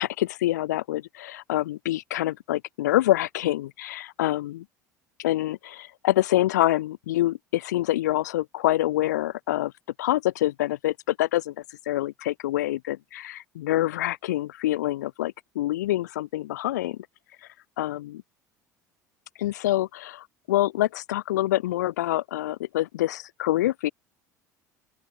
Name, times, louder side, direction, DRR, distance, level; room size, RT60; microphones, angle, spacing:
voice 1, 0.0-4.6 5.2-9.7 10.0-11.5 11.8-17.0 17.8-18.2 19.4-23.9, left 15 dB, 70° left, 1.8 m, -26 dB
open air
figure-of-eight pair, 65°, 10 cm